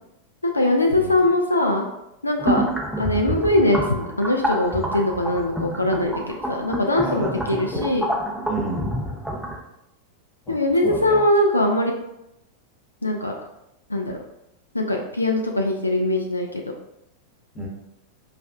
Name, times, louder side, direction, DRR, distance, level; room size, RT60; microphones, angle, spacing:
voice 1, 0.4-1.8 2.2-2.6 3.0-7.3 7.6-8.0 10.5-11.9 13.0-13.3 13.9-14.2 14.7-16.6, left 1 dB, 80° left, 2 dB, 0.3 m, -21 dB
sound 1, 2.4-9.6, equal, ahead, 0.5 m, -28 dB
voice 2, 7.0-7.9 8.5-8.9 10.5-11.2 17.5-17.7, right 1 dB, 20° left, -2 dB, 1.0 m, -31 dB
5.0 x 2.4 x 2.3 m, 0.85 s
figure-of-eight pair, 90°, 0 cm